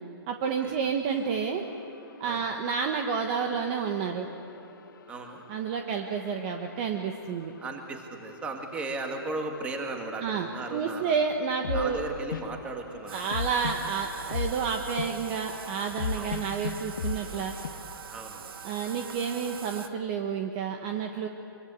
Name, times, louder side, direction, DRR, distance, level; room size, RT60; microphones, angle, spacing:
voice 1, 0.3-1.6 2.2-4.3 5.5-7.5 10.2-12.0 13.1-17.5 18.6-21.3, right 6 dB, 25° right, 4 dB, 1.2 m, -30 dB
sound 1, 1.1-17.7, left 6 dB, 55° left, 1.2 m, -40 dB
voice 2, 5.1-5.4 7.6-11.2 11.7-13.3 16.1-16.4 18.1-18.6, right 2 dB, 10° right, 3 dB, 2.0 m, -36 dB
Bathtub (filling or washing), 13.1-19.9, right 7 dB, 70° right, 1.3 m, -43 dB
26.0 x 23.5 x 8.3 m, 2.7 s
hypercardioid pair, 170°, 12 cm